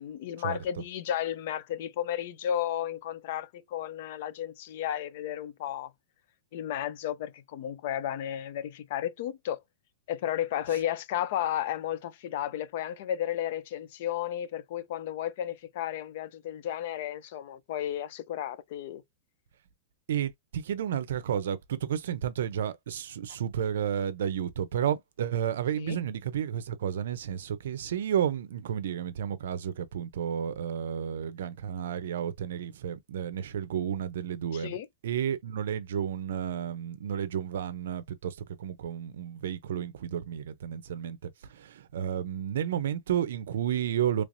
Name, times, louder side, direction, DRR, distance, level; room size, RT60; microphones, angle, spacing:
voice 1, 0.0-5.9 6.5-9.6 10.1-19.0 25.8-26.0 34.5-34.9, left 11 dB, 45° left, 0.5 m, -33 dB
voice 2, 20.1-34.8 35.0-44.2, right 9 dB, 70° right, 0.6 m, -32 dB
3.3 x 3.1 x 2.6 m
supercardioid pair, 170°, 0 cm